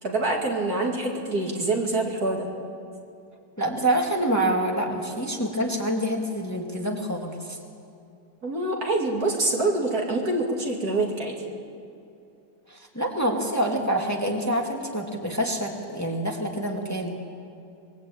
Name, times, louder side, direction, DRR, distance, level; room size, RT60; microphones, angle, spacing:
voice 1, 0.0-2.5 8.4-11.3, right 2 dB, 55° right, 0 dB, 3.1 m, -25 dB
voice 2, 3.6-7.6 12.7-17.2, right 1 dB, 10° left, 0 dB, 2.4 m, -26 dB
25.0 x 22.5 x 8.7 m, 2.6 s
omnidirectional pair, 2.0 m